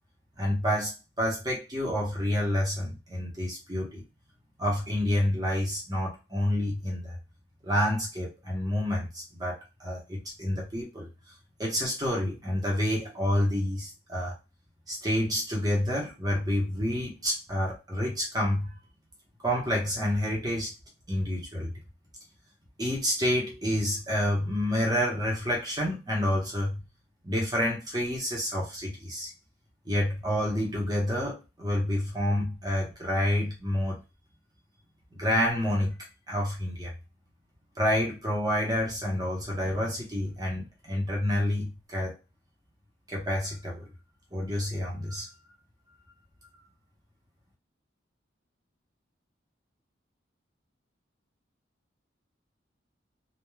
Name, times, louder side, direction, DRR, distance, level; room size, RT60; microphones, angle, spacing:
voice 1, 0.4-4.0 4.6-7.2 7.6-11.1 11.6-14.3 14.9-18.8 19.4-20.7 21.1-21.7 22.8-26.8 27.2-29.3 29.8-34.0 35.1-36.9 37.8-42.1 43.1-43.8 44.3-45.3, left 1 dB, 20° right, -3 dB, 0.9 m, -28 dB
3.1 x 2.3 x 2.2 m, 0.27 s
head